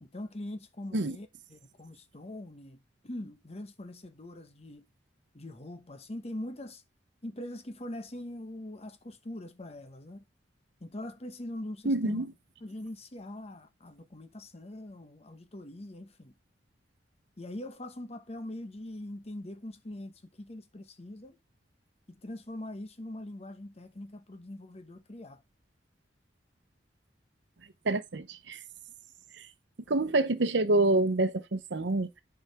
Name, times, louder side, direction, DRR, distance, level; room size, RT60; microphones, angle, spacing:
voice 1, 0.0-4.8 5.3-6.8 7.2-10.2 10.8-12.2 12.6-16.3 17.4-21.4 22.1-25.4, left 1 dB, 35° left, 1.0 m, -42 dB
voice 2, 11.8-12.3 27.8-28.6 29.3-29.5 29.9-32.2, right 2 dB, 75° right, 0.8 m, -27 dB
9.6 x 4.9 x 3.5 m
head